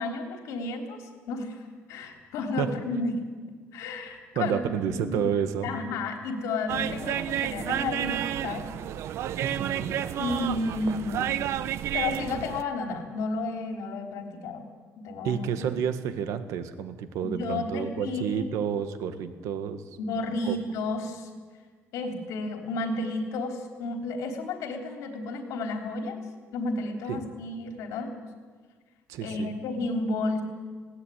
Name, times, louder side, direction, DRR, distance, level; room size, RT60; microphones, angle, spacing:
voice 1, 0.0-3.2 3.7-4.6 5.0-5.3 5.6-8.7 10.2-11.3 11.9-14.7 15.0-15.5 17.2-18.5 20.0-21.3 21.9-26.2 26.5-28.1 29.2-30.4, left 3 dB, 90° left, 4 dB, 3.6 m, -32 dB
voice 2, 4.4-5.7 9.4-10.0 15.2-19.8 20.4-20.6 27.1-27.2 29.1-29.5, right 8 dB, 80° right, 9 dB, 1.8 m, -30 dB
sound 1, 6.7-12.6, right 11 dB, 60° right, 0.8 m, -31 dB
20.0 x 17.5 x 9.3 m, 1.5 s
cardioid pair, 165°, 5 cm